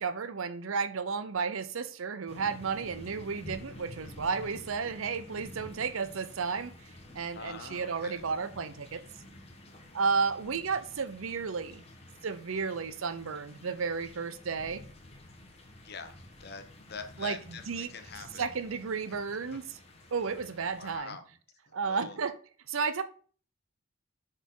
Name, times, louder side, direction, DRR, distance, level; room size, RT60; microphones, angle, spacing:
voice 1, 0.0-6.7 7.1-9.0 9.9-11.8 12.2-14.8 17.2-17.9 18.3-19.8 20.1-21.2 21.7-22.3 22.7-23.0, right 5 dB, 80° right, 0.6 m, -33 dB
sound 1, 2.3-21.0, left 1 dB, 30° left, 1.1 m, -50 dB
voice 2, 7.3-8.2 10.4-10.5 15.8-16.1 16.4-18.5 20.8-21.2 21.8-22.2, left 5 dB, 50° left, 0.9 m, -44 dB
6.2 x 4.0 x 5.5 m
head